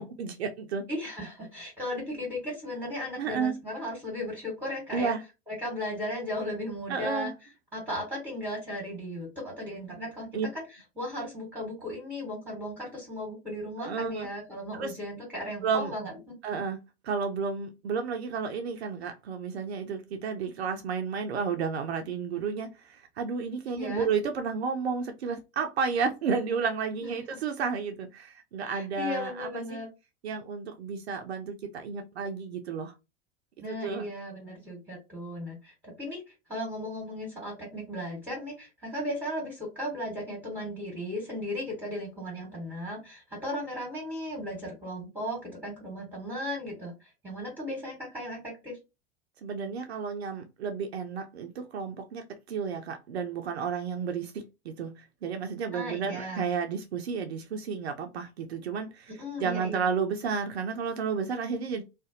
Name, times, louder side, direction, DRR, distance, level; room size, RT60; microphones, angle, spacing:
voice 1, 0.0-0.8 3.2-3.6 4.9-5.2 6.9-7.3 10.3-10.5 13.8-14.3 14.7-15.0 15.6-15.9 16.4-29.8 30.2-32.9 33.7-34.1 49.4-59.1 59.4-61.8, right 5 dB, 75° right, 0.5 m, -32 dB
voice 2, 0.9-5.1 5.5-7.3 7.7-10.6 11.0-16.4 23.7-24.1 28.6-29.9 33.6-48.8 55.7-56.4 59.1-59.9, left 1 dB, 5° right, 1.2 m, -36 dB
2.4 x 2.1 x 2.6 m
figure-of-eight pair, 85°, 32 cm